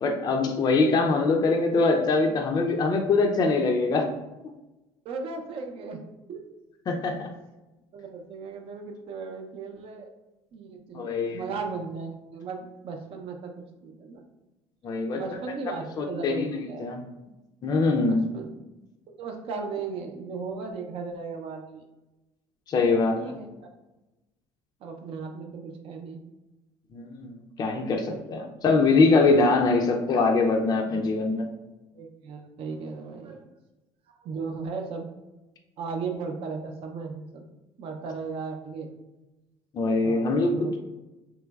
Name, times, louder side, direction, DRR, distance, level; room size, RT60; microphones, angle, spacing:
voice 1, 0.0-4.1 6.9-7.3 10.9-11.4 14.8-15.2 16.0-17.0 17.6-18.3 22.7-23.3 26.9-27.3 27.6-31.4 39.7-40.8, left 3 dB, 35° left, 2 dB, 0.4 m, -23 dB
voice 2, 5.0-6.0 6.3-6.4 7.9-10.1 10.5-13.5 13.8-14.2 15.1-16.9 18.1-18.5 19.1-21.8 22.9-23.5 24.8-26.2 28.1-28.2 30.9-31.0 31.9-33.5 34.2-35.1 35.8-37.5 37.8-38.9 40.0-40.7, right 4 dB, 55° right, 4 dB, 0.6 m, -36 dB
3.2 x 2.9 x 2.3 m, 1.0 s
supercardioid pair, 95°, 11 cm